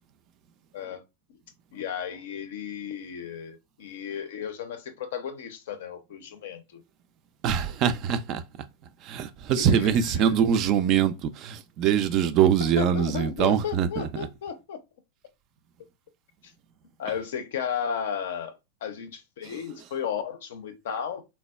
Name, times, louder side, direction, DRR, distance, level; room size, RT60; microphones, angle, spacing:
voice 1, 1.7-6.8 9.6-9.9 12.8-14.8 17.0-21.2, left 7 dB, 55° left, 0.5 m, -34 dB
voice 2, 7.4-8.4 9.0-14.3 19.4-19.6, right 8 dB, 35° right, 0.3 m, -23 dB
3.3 x 2.2 x 2.2 m
figure-of-eight pair, 90°, 0 cm